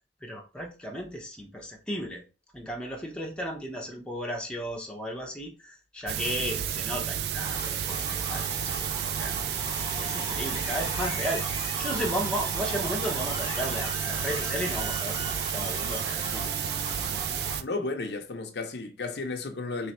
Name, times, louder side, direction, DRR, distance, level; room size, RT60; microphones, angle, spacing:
voice 1, 0.2-2.2 2.5-7.6 7.9-9.5 10.0-16.4, equal, 5° left, 0.8 m, -35 dB
sound 1, 6.1-17.6, right 9 dB, 65° right, 0.3 m, -31 dB
sound 2, 7.4-17.6, equal, 20° right, 1.7 m, -37 dB
voice 2, 17.6-19.9, left 3 dB, 70° left, 0.7 m, -33 dB
3.4 x 3.2 x 4.2 m
head